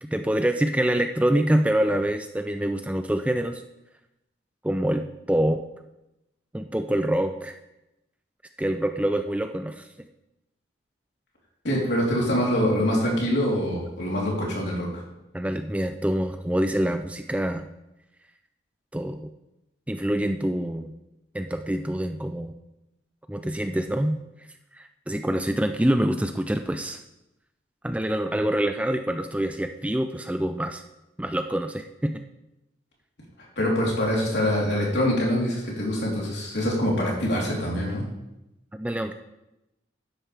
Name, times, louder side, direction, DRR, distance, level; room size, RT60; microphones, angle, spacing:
voice 1, 0.0-3.6 4.6-5.6 6.5-7.6 8.6-9.9 15.3-17.7 18.9-19.3 19.9-20.9 21.3-22.5 23.3-24.2 24.7-27.0 27.8-30.8 31.2-32.2 38.8-39.1, right 1 dB, 5° right, 7 dB, 0.4 m, -26 dB
voice 2, 11.6-14.9 33.6-38.0, equal, 65° left, -3 dB, 3.6 m, -24 dB
12.0 x 10.5 x 3.4 m, 0.91 s
head